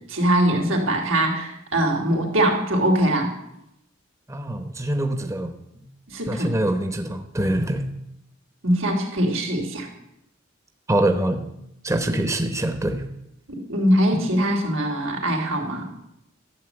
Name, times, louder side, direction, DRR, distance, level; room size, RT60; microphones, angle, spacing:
voice 1, 0.1-3.3 6.1-6.6 8.6-9.9 13.5-15.9, right 1 dB, 90° right, 1 dB, 3.3 m, -22 dB
voice 2, 4.3-5.9 6.3-7.9 10.9-11.5 11.8-13.0, right 1 dB, 15° right, 7 dB, 0.9 m, -24 dB
13.0 x 7.4 x 9.0 m, 0.82 s
head